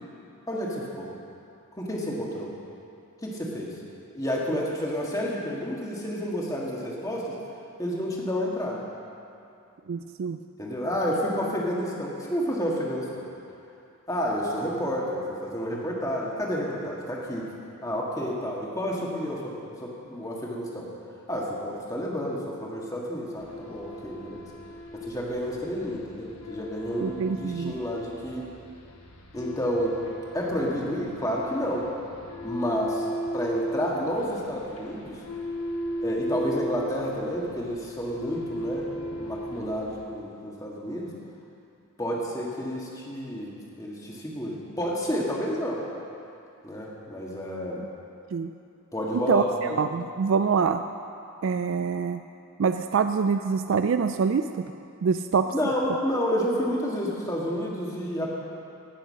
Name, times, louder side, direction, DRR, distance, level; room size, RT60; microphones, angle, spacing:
voice 1, 0.5-1.1 1.8-2.5 3.2-3.8 4.1-7.4 7.8-8.8 10.6-13.3 14.1-17.5 17.8-20.9 21.3-24.5 24.9-28.5 29.3-30.0 30.3-31.9 32.4-33.1 33.3-35.2 36.0-38.9 39.2-41.1 42.0-45.8 46.6-47.8 48.9-49.8 55.5-58.3, equal, 15° left, -3 dB, 1.7 m, -30 dB
voice 2, 9.9-10.4 27.0-27.8 48.3-48.5 49.1-49.4 49.8-50.8 51.4-52.2 52.6-54.7 55.0-55.5, right 6 dB, 60° right, 8 dB, 0.3 m, -25 dB
sound 1, 23.4-40.0, equal, 80° left, 1.3 m, -36 dB
18.0 x 6.6 x 6.4 m, 2.6 s
head